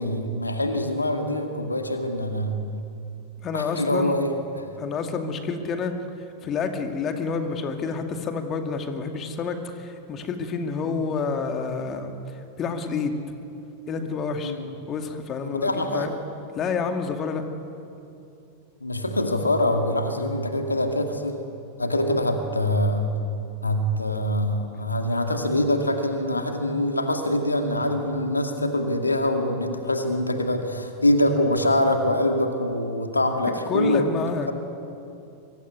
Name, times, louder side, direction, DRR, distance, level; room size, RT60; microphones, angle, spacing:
voice 1, 0.0-2.5 3.5-4.7 10.8-11.0 14.4-14.7 15.5-16.1 18.8-21.4 21.8-23.1 23.6-34.1, left 1 dB, 80° left, 5 dB, 2.2 m, -24 dB
voice 2, 3.4-4.2 4.8-5.9 6.2-13.2 13.9-14.6 14.9-16.1 16.5-17.4 33.5-34.5, left 5 dB, 30° left, 5 dB, 2.4 m, -29 dB
25.0 x 23.0 x 9.6 m, 2.7 s
figure-of-eight pair, 90°, 0 cm